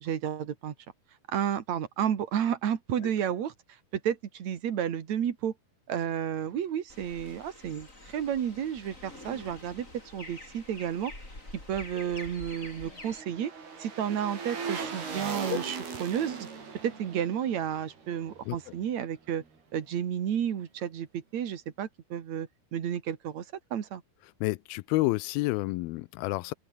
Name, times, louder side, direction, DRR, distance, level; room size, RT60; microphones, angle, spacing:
voice 1, 0.0-0.7 1.3-3.5 3.9-5.5 5.9-11.1 11.7-13.5 13.8-16.5 16.8-19.4 19.7-23.5 23.7-24.0, right 9 dB, 50° right, 2.9 m, -31 dB
sound 1, 6.9-13.2, left 2 dB, 20° left, 7.0 m, -47 dB
sound 2, 11.9-19.1 19.4-19.5, right 5 dB, 90° right, 7.9 m, -40 dB
voice 2, 24.4-26.5, left 20 dB, 80° left, 2.5 m, -29 dB
open air
omnidirectional pair, 4.4 m